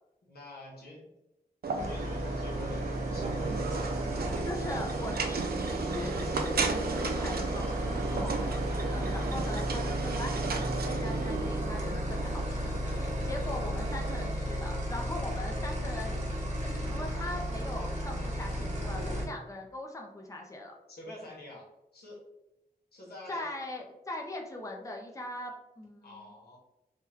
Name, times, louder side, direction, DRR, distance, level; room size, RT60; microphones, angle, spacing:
voice 1, 0.3-1.1 1.8-3.6 20.9-22.2 22.9-23.5 26.0-26.6, left 1 dB, 85° left, -4 dB, 1.1 m, -47 dB
sound 1, 1.6-14.3, right 4 dB, 75° right, 0.4 m, -35 dB
sound 2, 1.8-19.3, equal, 50° right, 1.0 m, -34 dB
voice 2, 4.4-16.1 16.6-20.7 23.3-26.3, left 1 dB, 20° left, 1 dB, 0.6 m, -41 dB
3.6 x 2.2 x 2.8 m, 0.91 s
cardioid pair, 40°, 16 cm